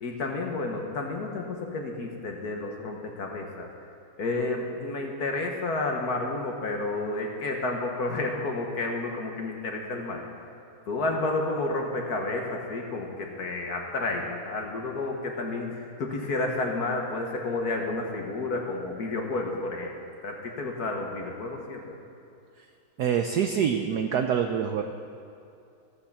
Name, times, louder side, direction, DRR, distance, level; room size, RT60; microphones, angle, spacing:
voice 1, 0.0-3.7 4.2-10.2 10.9-19.9 20.2-21.8, left 2 dB, 50° left, 1 dB, 1.6 m, -31 dB
voice 2, 23.0-24.8, right 8 dB, 75° right, 6 dB, 0.9 m, -25 dB
14.5 x 8.2 x 7.1 m, 2.5 s
omnidirectional pair, 2.3 m